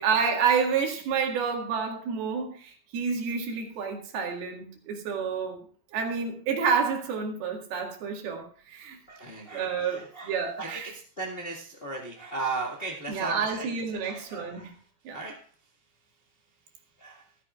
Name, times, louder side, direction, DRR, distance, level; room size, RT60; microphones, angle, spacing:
voice 1, 0.0-5.6 5.9-9.0 9.5-10.9 13.1-14.7 15.1-15.2, right 6 dB, 85° right, 2 dB, 3.8 m, -29 dB
voice 2, 9.1-13.7 14.0-14.7 15.1-15.4 17.0-17.2, right 3 dB, 35° left, -2 dB, 0.9 m, -37 dB
14.5 x 14.0 x 2.4 m, 0.41 s
omnidirectional pair, 4.3 m